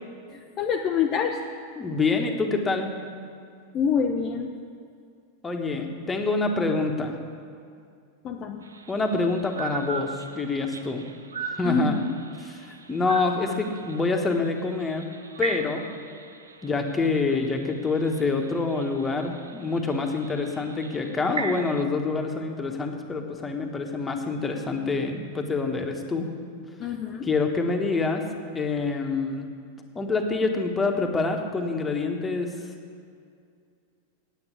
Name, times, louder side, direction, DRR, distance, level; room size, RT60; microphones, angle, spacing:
voice 1, 0.3-1.4 3.7-4.5 8.2-8.6 11.6-12.1 26.8-27.3, left 6 dB, 30° left, 2 dB, 0.6 m, -26 dB
voice 2, 1.8-2.9 5.4-7.2 8.9-11.1 11.6-11.9 12.4-15.0 15.4-15.8 16.6-26.3 27.2-28.2 28.5-29.5 29.9-32.5, left 3 dB, 15° left, 3 dB, 1.3 m, -26 dB
sound 1, 8.6-21.8, right 4 dB, 75° right, 0.6 m, -39 dB
8.9 x 8.9 x 8.4 m, 2.4 s
figure-of-eight pair, 90°, 0 cm